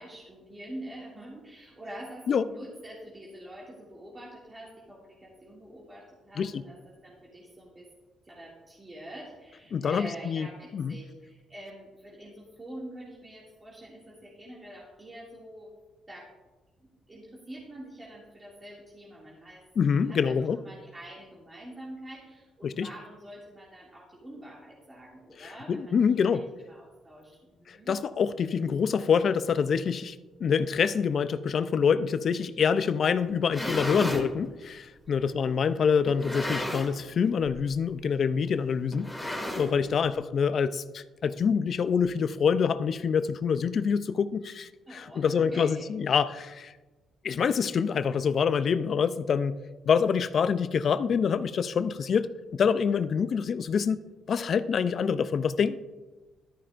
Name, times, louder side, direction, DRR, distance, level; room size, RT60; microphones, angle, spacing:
voice 1, 0.0-7.9 8.2-15.8 16.1-16.3 16.8-19.6 20.1-28.0 35.0-35.6 39.7-40.3 44.9-45.9 52.9-53.3, right 1 dB, 25° right, -5 dB, 2.2 m, -46 dB
voice 2, 9.7-10.5 10.7-10.9 19.8-20.6 22.6-22.9 25.4-26.4 27.7-30.2 30.4-46.7 47.2-49.5 49.9-54.0 54.3-55.8, left 6 dB, 55° left, 13 dB, 0.4 m, -26 dB
sound 1, 33.3-34.3 35.1-35.2 36.1-37.1 37.4-37.7 37.9-38.0 38.9-40.0, left 1 dB, 5° left, 2.0 m, -33 dB
12.5 x 10.0 x 2.5 m, 1.2 s
cardioid pair, 90°, 0 cm